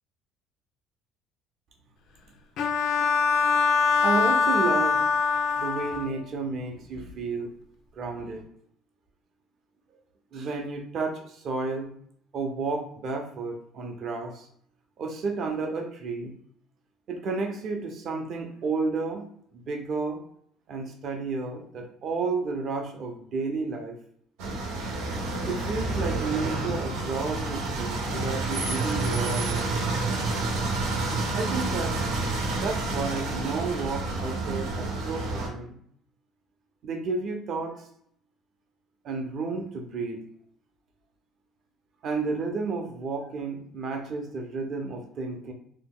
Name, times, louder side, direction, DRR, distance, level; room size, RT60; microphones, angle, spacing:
Bowed string instrument, 2.6-6.3, left 5 dB, 50° left, 0.3 m, -23 dB
voice 1, 4.0-5.0 5.6-7.5 7.9-8.4 10.3-11.9 12.3-14.5 15.0-16.3 17.1-19.3 19.5-20.2 20.7-24.0 25.5-29.8 31.3-32.0 32.6-35.8 36.8-37.9 39.0-40.2 42.0-45.5, right 4 dB, 45° right, 3 dB, 0.6 m, -31 dB
sound 1, 24.4-35.5, right 2 dB, 80° right, 0.8 m, -29 dB
2.8 x 2.1 x 3.6 m, 0.65 s
cardioid pair, 160°, 0 cm